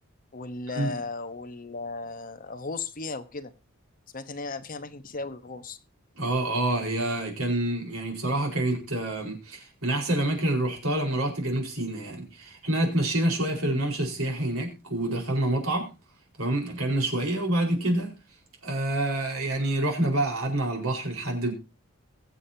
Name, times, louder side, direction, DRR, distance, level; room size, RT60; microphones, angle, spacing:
voice 1, 0.3-3.5 4.1-5.8 13.7-13.8, left 3 dB, 40° left, 1.0 m, -36 dB
voice 2, 6.2-15.9 16.4-18.1 18.6-21.5, right 1 dB, 85° right, 4.6 m, -27 dB
22.0 x 7.6 x 2.8 m
head